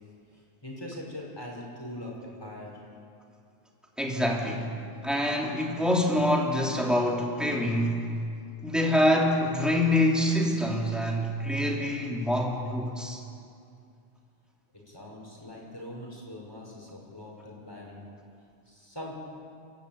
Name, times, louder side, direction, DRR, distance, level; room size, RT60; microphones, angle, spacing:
voice 1, 0.6-2.8 14.9-18.0 18.7-19.2, left 1 dB, 25° left, -3 dB, 5.3 m, -42 dB
voice 2, 4.0-4.8 5.0-8.1 8.6-13.2, left 1 dB, ahead, -1 dB, 3.1 m, -26 dB
29.5 x 13.0 x 8.8 m, 2.4 s
omnidirectional pair, 1.1 m